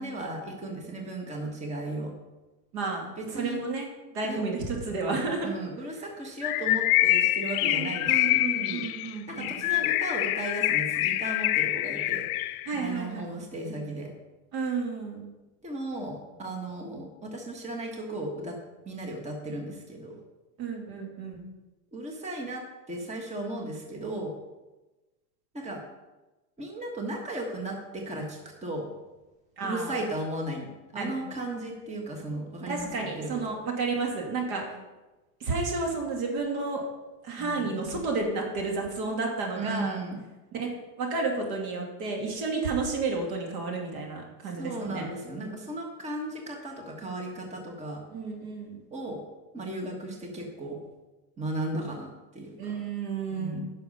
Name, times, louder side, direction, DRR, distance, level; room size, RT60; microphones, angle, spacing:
voice 1, 0.0-2.1 3.2-3.6 4.3-4.4 5.4-8.9 9.3-14.1 15.6-18.6 18.8-20.2 21.9-22.6 22.9-24.3 25.5-25.8 26.6-28.9 29.6-33.5 37.4-37.8 39.5-40.2 44.6-48.0 48.9-49.2 49.5-50.8 51.4-52.8 53.3-53.7, right 1 dB, 15° right, 2 dB, 1.4 m, -36 dB
voice 2, 2.7-3.0 3.3-5.5 7.6-9.7 12.7-13.2 14.5-15.3 20.6-21.5 29.6-30.0 30.9-31.1 32.7-34.8 35.4-36.8 37.2-40.0 40.5-40.7 41.0-45.1 48.1-48.8 52.6-53.6, right 3 dB, 65° right, 1 dB, 2.8 m, -31 dB
Bird, 6.4-12.7, left 16 dB, 75° left, 0.6 m, -26 dB
10.5 x 6.3 x 5.4 m, 1.1 s
supercardioid pair, 130°, 43 cm